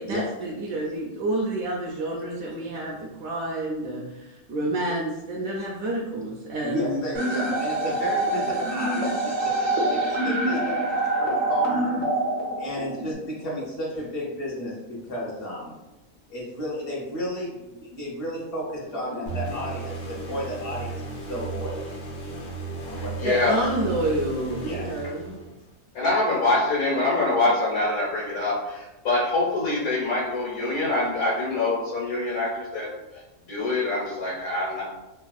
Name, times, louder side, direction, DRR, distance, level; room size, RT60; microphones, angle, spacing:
voice 1, 0.0-7.0 23.2-25.4, right 1 dB, 75° right, -4 dB, 1.0 m, -29 dB
voice 2, 6.6-12.0 12.6-15.8 16.3-21.9 22.9-23.5 23.9-24.0 24.6-24.9, equal, 50° left, -5 dB, 0.9 m, -33 dB
sound 1, 7.1-13.1, right 2 dB, 55° right, 0.5 m, -25 dB
sound 2, 19.3-25.7, right 3 dB, 85° left, 1.2 m, -35 dB
voice 3, 23.2-23.6 25.9-32.9 33.5-34.8, left 2 dB, 65° left, -8 dB, 1.4 m, -24 dB
3.4 x 2.4 x 2.3 m, 1.0 s
omnidirectional pair, 1.6 m